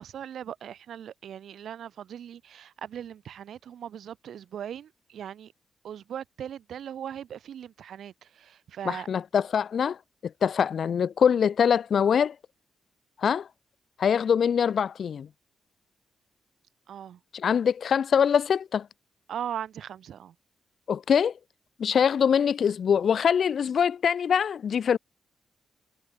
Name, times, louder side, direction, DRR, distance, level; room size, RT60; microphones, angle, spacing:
voice 1, 0.0-5.5 5.8-9.1 16.9-17.2 19.3-20.3, right 9 dB, 70° right, 4.0 m, -39 dB
voice 2, 8.8-10.0 10.2-12.3 13.2-13.5 14.0-15.3 17.3-18.9 20.9-21.3 21.8-25.0, left 7 dB, 50° left, 1.5 m, -23 dB
wide cardioid pair, 170°, 0 cm